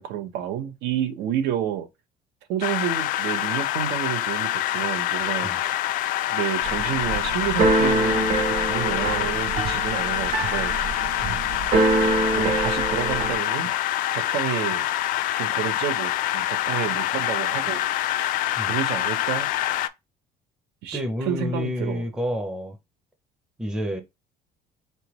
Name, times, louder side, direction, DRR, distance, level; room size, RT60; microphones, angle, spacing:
voice 1, 0.0-1.9 2.5-5.9 6.3-10.7 12.3-13.7 14.1-14.9 15.3-17.8 18.2-18.3 18.7-19.5 20.8-22.0, right 10 dB, 85° right, 0.9 m, -30 dB
sound 1, 2.6-19.9, left 13 dB, 55° left, 0.4 m, -26 dB
Keyboard (musical), 6.6-13.4, right 3 dB, 45° right, 0.8 m, -25 dB
voice 2, 20.9-22.8 23.6-24.0, equal, 5° right, 0.5 m, -29 dB
4.0 x 3.3 x 3.0 m
cardioid pair, 180°, 17 cm